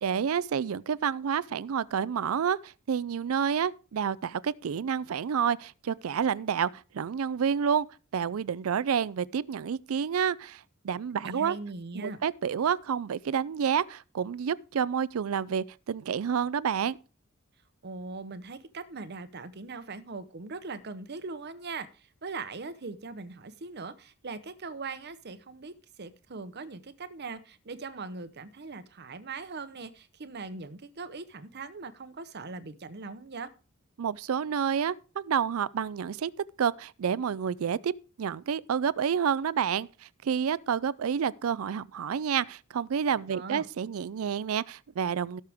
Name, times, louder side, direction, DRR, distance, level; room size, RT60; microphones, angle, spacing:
voice 1, 0.0-7.9 8.1-11.6 11.9-17.0 34.0-36.3 36.6-37.9 38.2-45.4, right 7 dB, 80° right, 0.4 m, -29 dB
voice 2, 11.2-12.2 17.8-33.5 43.3-43.7, right 4 dB, 50° right, 0.9 m, -40 dB
17.0 x 6.6 x 3.5 m
head